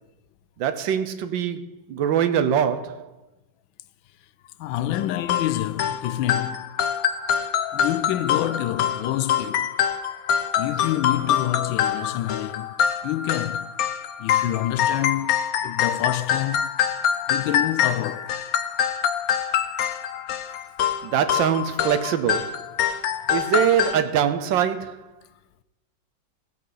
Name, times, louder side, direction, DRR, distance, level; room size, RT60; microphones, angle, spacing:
voice 1, 0.6-3.1 21.0-22.5 23.3-25.0, right 9 dB, 80° right, 1.5 m, -23 dB
voice 2, 4.6-6.7 7.7-9.8 10.5-13.7 14.2-16.7 17.3-18.4, left 13 dB, 90° left, 1.3 m, -27 dB
sound 1, 4.9-24.0, left 9 dB, 70° left, 0.9 m, -25 dB
17.0 x 7.5 x 3.9 m
omnidirectional pair, 2.1 m